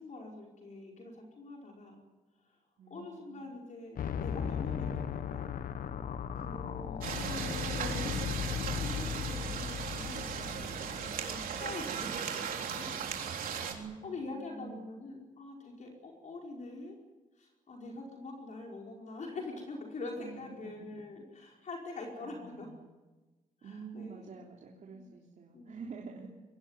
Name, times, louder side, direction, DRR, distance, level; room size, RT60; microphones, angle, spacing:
voice 1, 0.0-2.0 2.3-5.5 6.3-8.2 8.6-12.9 13.4-17.0 17.3-22.7 23.6-24.4 24.9-25.2 25.5-25.9 26.2-26.3, left 2 dB, 60° left, 0 dB, 5.1 m, -45 dB
voice 2, 2.8-3.5 13.6-14.9 20.2-21.0 22.2-22.9 23.6-26.3, right 5 dB, 60° right, -1 dB, 3.4 m, -48 dB
sound 1, 4.0-12.0, left 8 dB, 85° left, 1.2 m, -37 dB
sound 2, 7.0-13.7, right 7 dB, 85° right, 3.7 m, -37 dB
23.5 x 17.5 x 9.8 m, 1.2 s
cardioid pair, 105°, 14 cm